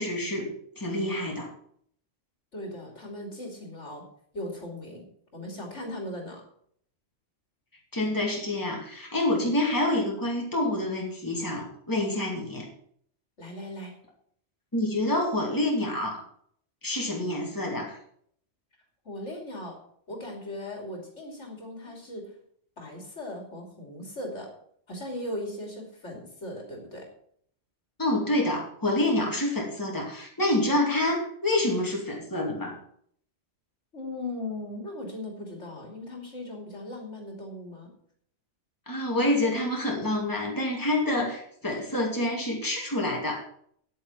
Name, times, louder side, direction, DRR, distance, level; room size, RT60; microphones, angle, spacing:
voice 1, 0.0-1.5 7.9-12.7 14.7-16.2 16.8-18.0 28.0-32.8 38.9-43.5, left 1 dB, 15° left, -1 dB, 2.6 m, -27 dB
voice 2, 2.5-4.0 4.3-5.1 5.3-6.4 13.4-13.9 19.0-19.8 20.1-22.3 22.8-24.5 24.9-27.1 33.9-37.9, left 1 dB, 75° left, 1 dB, 3.3 m, -38 dB
9.8 x 8.6 x 5.8 m, 0.64 s
omnidirectional pair, 1.2 m